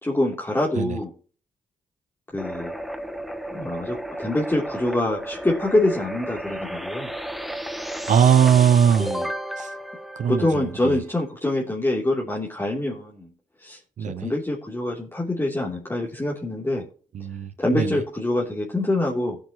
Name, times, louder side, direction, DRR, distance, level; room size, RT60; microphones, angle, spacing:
voice 1, 0.0-1.1 2.3-2.7 3.5-7.1 9.0-9.3 10.3-13.3 13.6-13.8 14.1-16.8 17.6-19.4, left 1 dB, 15° left, 3.1 m, -25 dB
sound 1, 2.4-11.0, right 1 dB, ahead, 1.3 m, -33 dB
voice 2, 8.1-9.1 9.6-9.7 10.2-11.0 14.0-14.3 17.1-18.0, right 8 dB, 60° right, 0.7 m, -20 dB
17.0 x 8.7 x 3.0 m
supercardioid pair, 50°, 14 cm